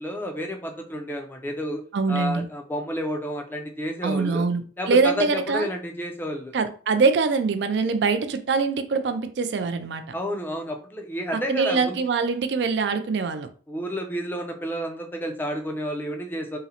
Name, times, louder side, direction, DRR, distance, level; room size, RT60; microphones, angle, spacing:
voice 1, 0.0-1.8 2.1-4.5 4.8-6.5 10.1-12.0 13.7-16.6, equal, 10° left, 0.4 m, -30 dB
voice 2, 1.9-2.5 4.0-5.7 6.5-10.0 11.3-13.5, right 4 dB, 60° right, 0.3 m, -23 dB
3.7 x 2.0 x 2.8 m
head